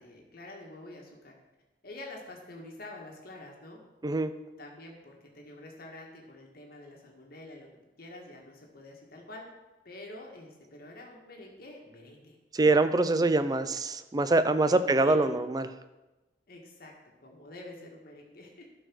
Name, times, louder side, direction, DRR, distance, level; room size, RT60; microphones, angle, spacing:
voice 1, 0.0-1.3 1.8-3.8 4.6-7.7 8.0-9.4 9.9-12.4 13.0-13.6 14.6-15.4 16.5-16.9 17.2-18.7, left 2 dB, 60° left, 0 dB, 1.7 m, -47 dB
voice 2, 12.5-15.7, right 2 dB, 20° right, 11 dB, 0.5 m, -24 dB
12.0 x 4.7 x 6.2 m, 1.1 s
head